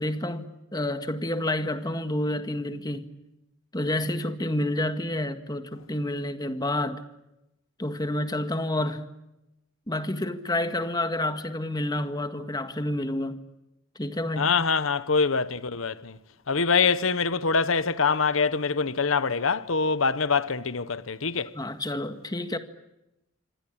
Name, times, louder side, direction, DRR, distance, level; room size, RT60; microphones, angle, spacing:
voice 1, 0.0-3.1 3.7-7.0 7.8-9.1 9.9-13.4 14.0-14.5 21.5-22.6, left 1 dB, 20° left, 1.8 m, -29 dB
voice 2, 14.4-16.2 16.5-21.5, left 5 dB, 90° left, 1.0 m, -24 dB
27.0 x 25.0 x 8.8 m
head